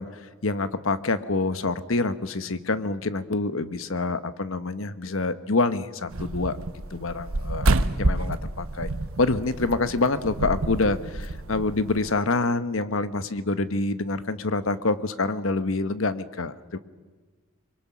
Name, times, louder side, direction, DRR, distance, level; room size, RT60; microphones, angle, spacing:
voice 1, 0.0-6.6 6.9-7.7 8.0-8.9 9.2-16.8, left 3 dB, 75° left, 12 dB, 1.1 m, -26 dB
sound 1, 6.1-12.1, right 2 dB, 85° right, 1.0 m, -28 dB
25.0 x 23.0 x 6.2 m, 1.4 s
head